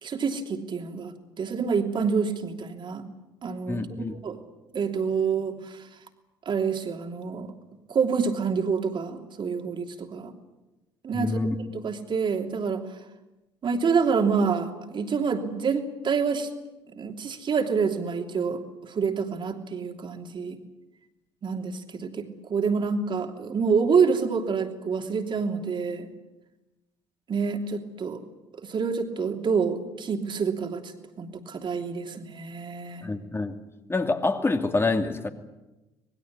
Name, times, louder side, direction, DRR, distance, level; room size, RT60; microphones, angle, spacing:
voice 1, 0.0-3.0 3.4-3.8 4.2-4.4 4.7-5.8 6.4-7.5 7.9-10.3 11.0-11.4 11.7-12.9 13.6-16.5 16.9-20.6 21.4-26.1 27.3-28.2 28.6-30.9 31.2-33.1, right 5 dB, 40° right, 4 dB, 3.1 m, -27 dB
voice 2, 3.7-4.2 11.1-11.6 33.0-33.6 33.9-35.3, left 3 dB, 20° left, 6 dB, 2.6 m, -26 dB
26.0 x 20.5 x 8.6 m, 1.0 s
figure-of-eight pair, 55°, 13 cm